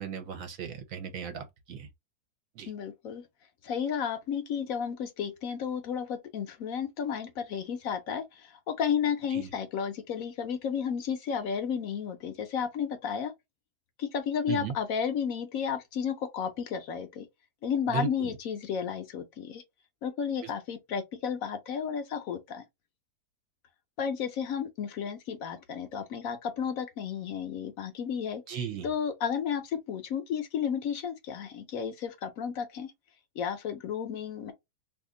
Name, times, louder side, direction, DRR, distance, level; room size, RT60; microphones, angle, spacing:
voice 1, 0.0-1.9 2.6-2.7 9.3-9.5 14.5-14.7 17.9-18.4 20.4-20.5 28.5-28.9, right 8 dB, 65° right, 1.0 m, -36 dB
voice 2, 2.7-3.2 3.6-13.3 14.0-17.2 17.6-19.6 20.0-22.6 24.0-28.4 28.8-32.9 33.4-34.5, left 7 dB, 70° left, 1.0 m, -32 dB
2.8 x 2.4 x 3.6 m
omnidirectional pair, 1.7 m